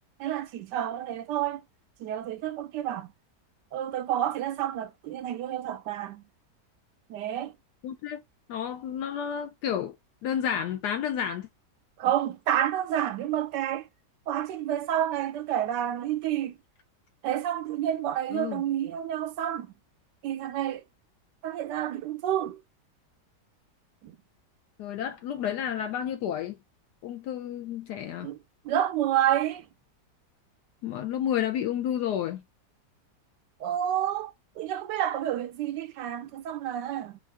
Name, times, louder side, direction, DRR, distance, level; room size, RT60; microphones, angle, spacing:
voice 1, 0.2-1.6 2.0-3.1 3.7-6.2 7.1-7.5 12.0-13.9 14.3-16.6 17.2-19.7 20.2-20.8 21.4-22.6 24.0-24.2 28.2-28.4 28.6-29.7 33.6-37.2, right 11 dB, 85° right, 1.2 m, -29 dB
voice 2, 7.8-8.2 8.5-9.9 10.2-11.5 18.3-18.6 24.8-26.6 27.0-28.3 30.8-32.4, left 9 dB, 75° left, 1.2 m, -31 dB
4.6 x 2.6 x 3.3 m
omnidirectional pair, 1.8 m